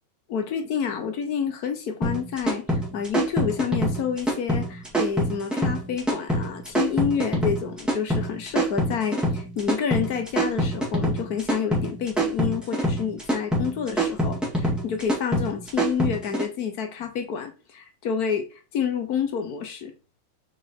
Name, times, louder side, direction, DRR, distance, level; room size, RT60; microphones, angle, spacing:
voice 1, 0.3-19.9, left 7 dB, 60° left, 1.2 m, -29 dB
sound 1, 2.0-16.4, right 1 dB, ahead, 1.7 m, -25 dB
4.9 x 4.4 x 4.5 m
omnidirectional pair, 2.2 m